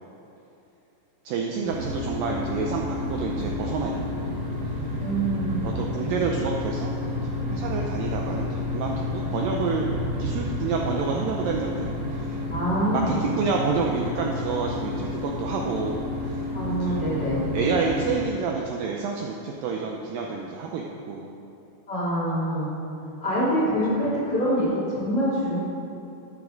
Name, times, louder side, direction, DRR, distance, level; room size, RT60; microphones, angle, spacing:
voice 1, 1.2-4.3 4.7-4.8 5.6-9.9 10.2-12.4 12.9-17.0 17.5-21.3, right 5 dB, 85° right, 0 dB, 1.9 m, -29 dB
sound 1, 1.6-18.2, left 2 dB, 60° right, 1.4 m, -30 dB
voice 2, 5.0-5.6 12.5-13.2 16.5-17.4 21.9-22.7 23.2-25.6, equal, 30° left, -10 dB, 3.0 m, -25 dB
12.5 x 9.8 x 3.9 m, 2.9 s
omnidirectional pair, 4.9 m